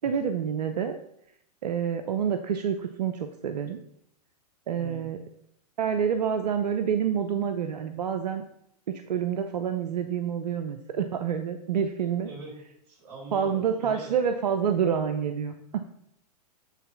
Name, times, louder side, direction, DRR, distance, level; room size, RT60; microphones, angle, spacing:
voice 1, 0.0-1.0 1.6-3.8 4.7-5.2 5.8-8.4 8.9-12.3 13.3-15.8, right 7 dB, 80° right, 8 dB, 0.7 m, -28 dB
voice 2, 4.8-5.1 12.2-12.6 12.9-14.2, right 3 dB, 55° right, -1 dB, 3.5 m, -42 dB
8.3 x 4.0 x 5.6 m, 0.73 s
hypercardioid pair, 115°, 20 cm